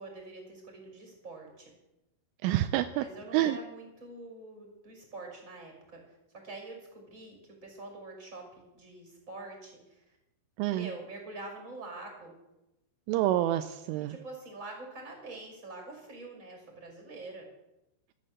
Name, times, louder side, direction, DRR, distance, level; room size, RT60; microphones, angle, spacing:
voice 1, 0.0-1.7 3.0-6.2 6.4-10.2 10.7-12.4 14.1-17.5, right 2 dB, 15° right, 1 dB, 5.6 m, -45 dB
voice 2, 2.4-3.1 3.3-3.6 10.6-10.9 13.1-14.2, right 14 dB, 85° right, 10 dB, 3.1 m, -27 dB
14.5 x 12.5 x 7.6 m, 0.93 s
omnidirectional pair, 5.7 m